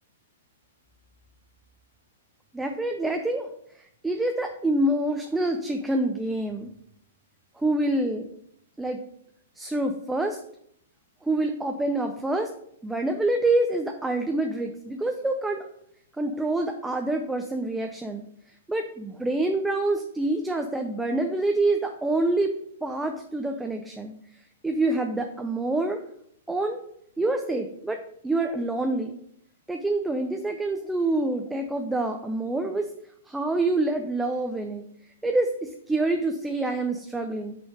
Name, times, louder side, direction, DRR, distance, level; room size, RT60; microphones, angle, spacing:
voice 1, 2.5-3.5 4.0-6.7 7.6-8.3 8.8-9.0 9.6-10.4 11.2-12.5 12.8-15.6 16.2-18.2 18.7-22.5 22.8-24.1 24.6-26.0 26.5-26.8 27.2-29.2 29.7-32.9 33.3-34.9 35.2-37.6, right 2 dB, 5° right, 4 dB, 0.4 m, -26 dB
6.2 x 3.4 x 5.0 m, 0.71 s
hypercardioid pair, 125°, 0 cm